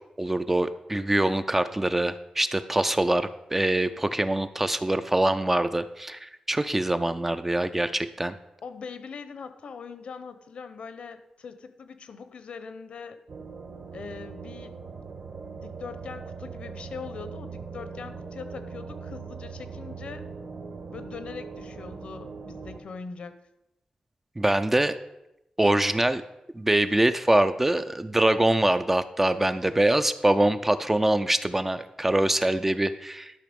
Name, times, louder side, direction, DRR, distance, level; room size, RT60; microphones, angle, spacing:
voice 1, 0.2-8.3 24.4-24.9 25.6-26.2 26.6-33.3, right 1 dB, 10° right, 10 dB, 0.3 m, -24 dB
voice 2, 8.6-13.2 13.9-14.8 15.6-20.2 20.9-23.3, left 5 dB, 60° left, 11 dB, 0.7 m, -41 dB
sound 1, 13.3-22.8, right 5 dB, 50° right, 1.2 m, -40 dB
12.0 x 5.7 x 5.1 m, 0.90 s
wide cardioid pair, 175°, 2 cm